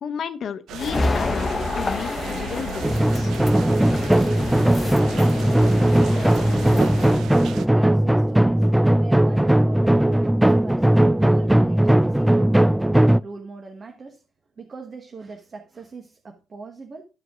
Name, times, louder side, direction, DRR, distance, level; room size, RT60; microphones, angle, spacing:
voice 1, 0.0-3.3, left 7 dB, 60° left, 0.8 m, -33 dB
sound 1, 0.7-7.7, right 9 dB, 80° right, 0.7 m, -36 dB
sound 2, 0.8-7.2, left 3 dB, 30° left, 0.9 m, -28 dB
sound 3, 2.8-13.2, right 1 dB, 5° right, 0.3 m, -18 dB
voice 2, 5.7-7.4 7.7-8.7 9.0-12.6 13.2-14.2 14.6-17.1, right 4 dB, 40° right, 1.2 m, -41 dB
12.0 x 4.9 x 3.7 m
cardioid pair, 90°, 0 cm